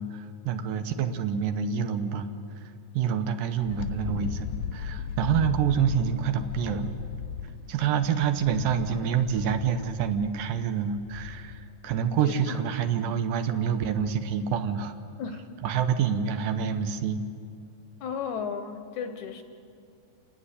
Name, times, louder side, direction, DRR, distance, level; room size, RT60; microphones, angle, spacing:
voice 1, 0.0-2.3 2.6-6.9 7.7-15.0 15.6-17.2, right 7 dB, 80° right, 7 dB, 2.6 m, -27 dB
Wind, 3.6-11.7, left 7 dB, 90° left, 2.7 m, -36 dB
voice 2, 12.2-12.6 15.2-15.4 18.0-19.4, left 6 dB, 70° left, 7 dB, 2.0 m, -34 dB
29.0 x 10.0 x 9.8 m, 2.4 s
omnidirectional pair, 4.0 m